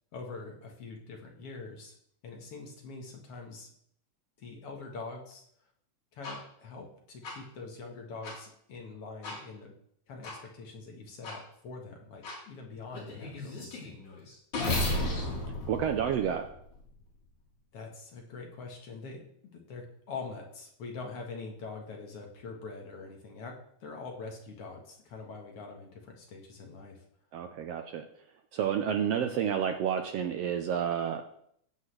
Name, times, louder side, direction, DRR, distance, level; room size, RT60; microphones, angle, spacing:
voice 1, 0.1-1.9 2.2-3.7 4.4-5.4 6.1-9.7 10.1-14.0 17.7-19.3 19.5-27.0, left 4 dB, 55° left, 2 dB, 2.2 m, -44 dB
sound 1, 6.2-6.4 7.2-7.3 8.2-8.4 9.2-9.4 10.2-10.4 11.2-11.4 12.2-12.4 12.9-16.8, left 2 dB, 80° left, 5.1 m, -34 dB
voice 2, 15.7-16.4 27.3-28.0 28.5-31.3, right 8 dB, 75° right, 6 dB, 1.5 m, -30 dB
15.5 x 8.2 x 3.3 m, 0.68 s
omnidirectional pair, 3.4 m